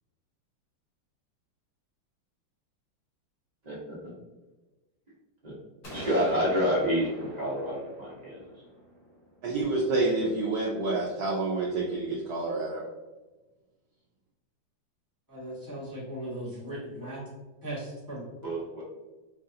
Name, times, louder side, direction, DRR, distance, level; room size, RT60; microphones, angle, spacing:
voice 1, 3.6-4.1 5.4-5.5 5.9-8.4 18.4-18.8, equal, 30° right, -7 dB, 0.7 m, -29 dB
sound 1, 5.8-9.6, equal, 55° left, 0.6 m, -43 dB
voice 2, 9.4-12.8, right 2 dB, 80° right, -3 dB, 0.9 m, -28 dB
voice 3, 15.3-17.2 17.6-18.2, right 1 dB, 15° left, -9 dB, 0.8 m, -38 dB
4.8 x 2.4 x 2.7 m, 1.2 s
omnidirectional pair, 2.2 m